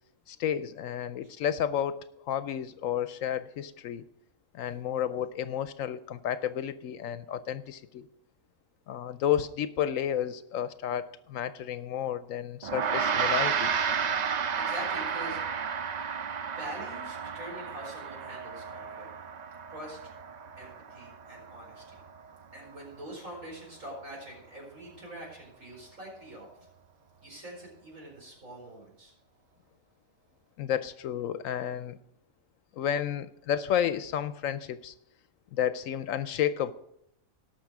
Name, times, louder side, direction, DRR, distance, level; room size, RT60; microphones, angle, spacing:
voice 1, 0.3-4.1 4.5-8.1 8.9-13.9 30.6-32.0 32.8-34.9 35.5-36.7, left 9 dB, 75° left, 13 dB, 0.9 m, -31 dB
Gong, 12.6-22.2, right 6 dB, 85° right, 0.3 m, -32 dB
voice 2, 14.6-15.4 16.6-19.1 19.7-20.1 20.6-22.0 22.5-26.5 27.2-29.1, right 1 dB, 70° right, -2 dB, 4.8 m, -44 dB
17.5 x 6.3 x 4.7 m, 0.76 s
omnidirectional pair, 1.4 m